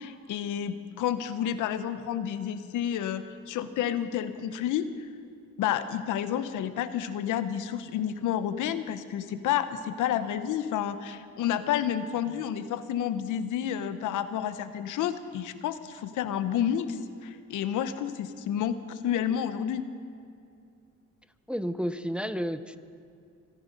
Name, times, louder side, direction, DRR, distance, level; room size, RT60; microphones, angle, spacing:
voice 1, 0.0-4.9 5.6-19.9, left 10 dB, 85° left, 11 dB, 0.9 m, -30 dB
voice 2, 21.5-22.8, equal, 5° right, 11 dB, 0.6 m, -31 dB
25.5 x 10.5 x 5.2 m, 2.5 s
cardioid pair, 90°, 30 cm